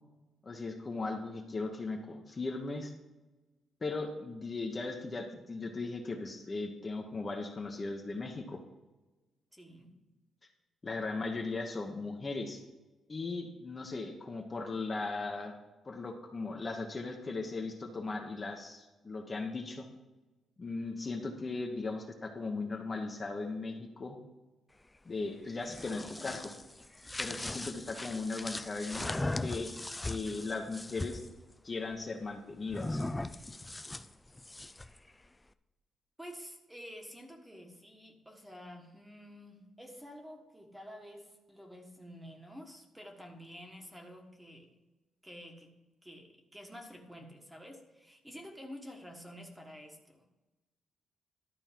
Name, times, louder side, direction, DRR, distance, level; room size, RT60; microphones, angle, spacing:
voice 1, 0.4-2.9 3.8-8.6 10.8-12.6 13.1-15.6 15.8-19.9 20.6-24.2 25.0-26.5 27.2-29.7 30.0-31.2 31.6-33.0, left 3 dB, 25° left, 1 dB, 1.0 m, -38 dB
voice 2, 9.5-10.0 36.2-44.7 45.2-45.7 46.0-50.2, equal, 5° right, 2 dB, 1.4 m, -49 dB
sound 1, 25.5-31.3 32.7-35.0, left 2 dB, 10° left, 0.4 m, -39 dB
12.0 x 4.4 x 7.4 m, 1.1 s
cardioid pair, 130°, 0 cm